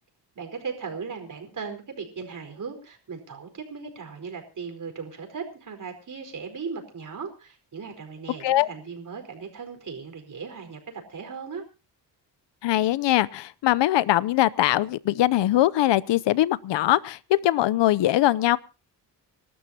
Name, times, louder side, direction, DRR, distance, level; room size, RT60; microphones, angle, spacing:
voice 1, 0.3-11.6, right 5 dB, 45° right, 5 dB, 4.7 m, -37 dB
voice 2, 12.6-18.6, left 14 dB, 80° left, 19 dB, 0.8 m, -22 dB
26.0 x 12.5 x 2.8 m, 0.32 s
cardioid pair, 95°, 42 cm